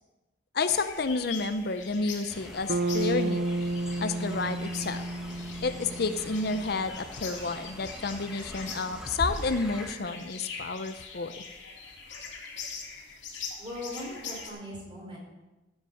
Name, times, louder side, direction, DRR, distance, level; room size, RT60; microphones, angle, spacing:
voice 1, 0.5-3.4 4.0-5.0 5.6-11.3, left 3 dB, 55° left, 10 dB, 0.6 m, -30 dB
sound 1, 0.7-14.5, left 5 dB, 80° left, 2.7 m, -43 dB
Fowl, 2.3-9.9, equal, 5° right, 1.4 m, -42 dB
Bass guitar, 2.7-6.8, right 2 dB, 65° right, 0.5 m, -31 dB
voice 2, 13.6-15.2, left 1 dB, 30° right, -2 dB, 4.4 m, -39 dB
15.5 x 8.1 x 5.7 m, 1.1 s
head